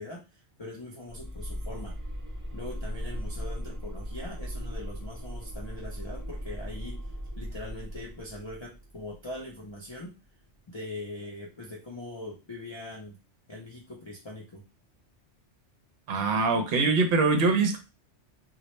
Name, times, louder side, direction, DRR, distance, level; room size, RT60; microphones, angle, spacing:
voice 1, 0.0-2.0 2.5-7.1 7.4-10.1 10.7-13.2 13.5-14.6, left 1 dB, 40° left, -3 dB, 0.4 m, -41 dB
sound 1, 1.1-10.0, equal, 30° right, 0.3 m, -38 dB
voice 2, 16.1-17.8, right 3 dB, 60° right, 5 dB, 0.8 m, -23 dB
2.2 x 2.1 x 2.9 m, 0.29 s
omnidirectional pair, 1.2 m